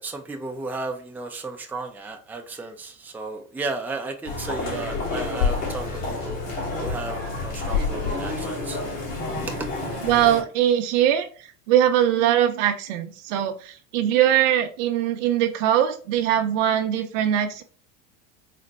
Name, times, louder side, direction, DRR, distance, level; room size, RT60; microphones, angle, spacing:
voice 1, 0.0-6.4 6.8-8.8 9.4-9.7, right 3 dB, 5° right, 0.5 m, -34 dB
sound 1, 4.2-10.4, left 3 dB, 55° left, 1.7 m, -28 dB
voice 2, 10.0-11.3 11.7-17.6, right 11 dB, 65° right, 0.7 m, -21 dB
4.2 x 2.1 x 4.1 m
hypercardioid pair, 80°, 39 cm